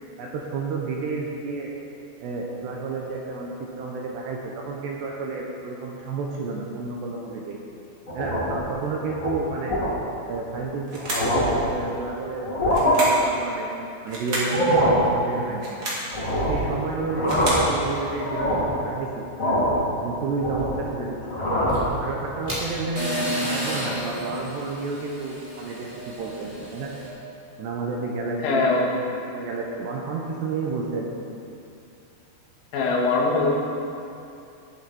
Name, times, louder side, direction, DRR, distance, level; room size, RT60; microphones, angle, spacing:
voice 1, 0.2-1.7 2.2-7.6 8.1-9.8 10.3-13.7 14.0-15.7 16.3-19.2 20.0-21.2 22.0-26.9 27.6-31.1, right 4 dB, 75° right, -2 dB, 2.7 m, -31 dB
sound 1, 8.1-8.6 9.1-9.3 9.7-9.9 10.5-10.6 11.0-11.6 12.4-13.0 14.4-15.1 16.1-16.7 17.0-17.8 18.2-18.8 19.4-19.8 20.2-20.9 21.2-21.9, equal, 35° left, 1.2 m, -23 dB
sound 2, 10.9-11.4 12.7-13.3 14.1-14.6 15.5-16.1 17.0-17.7, right 1 dB, 40° right, 1.7 m, -30 dB
sound 3, 21.6-27.1, equal, 10° right, 2.1 m, -32 dB
voice 2, 28.4-28.9 32.7-33.5, left 3 dB, 80° left, -2 dB, 4.4 m, -21 dB
20.0 x 8.0 x 4.3 m, 2.6 s
omnidirectional pair, 5.9 m